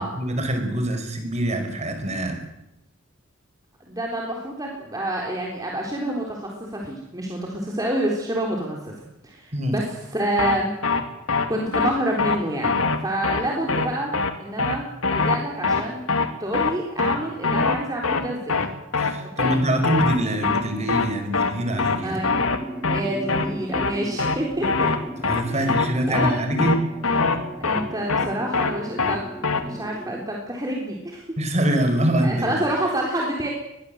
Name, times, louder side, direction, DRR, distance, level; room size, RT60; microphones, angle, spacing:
voice 1, 0.0-2.4 9.5-9.8 19.0-22.2 25.2-26.7 27.0-27.1 31.4-32.6, right 1 dB, 35° right, 6 dB, 5.4 m, -24 dB
voice 2, 3.9-8.9 9.2-10.7 11.5-14.1 14.4-16.0 16.4-18.6 19.4-19.5 22.0-22.5 22.8-24.9 25.5-26.4 27.6-29.3 29.6-31.2 32.2-33.5, right 1 dB, 20° right, -1 dB, 3.7 m, -28 dB
sound 1, 10.4-10.6 10.8-11.0 11.3-11.5 11.7-11.9 12.2-12.4 12.6-13.0 13.2-13.4 13.7-13.9 14.1-14.3 14.6-14.8 15.0-15.4 15.6-15.8 16.1-16.3 16.5-16.7 17.0-17.2 17.4-17.8 18.0-18.2 18.5-18.7 18.9-19.1 19.4-19.6 19.8-20.2 20.4-20.6 20.9-21.1 21.3-21.5 21.8-22.0 22.2-22.6 22.8-23.0 23.3-23.5 23.7-23.9 24.2-24.4 24.6-25.0 25.2-25.4 25.7-25.9 26.1-26.3 26.6-26.8 27.0-27.4 27.6-27.8 28.1-28.3 28.5-28.7 29.0-29.2 29.4-29.6, left 4 dB, 85° left, 2.7 m, -22 dB
sound 2, 21.7-30.3, right 1 dB, ahead, 2.5 m, -37 dB
25.0 x 21.5 x 8.0 m, 0.86 s
head